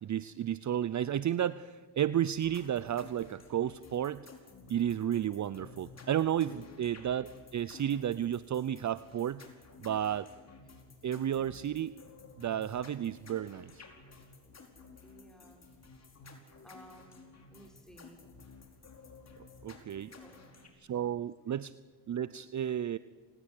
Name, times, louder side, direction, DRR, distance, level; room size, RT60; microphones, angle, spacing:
voice 1, 0.0-4.3 4.7-9.4 9.8-10.3 11.0-12.0 12.4-13.8 19.6-20.1 20.9-21.7 22.1-23.0, right 10 dB, 45° right, 17 dB, 0.7 m, -32 dB
sound 1, 2.4-20.7, left 4 dB, 40° left, 5.1 m, -54 dB
voice 2, 15.0-15.6 16.6-18.2 20.1-20.7, equal, ahead, 2 dB, 6.3 m, -57 dB
27.5 x 19.0 x 8.3 m, 1.5 s
cardioid pair, 75°, 41 cm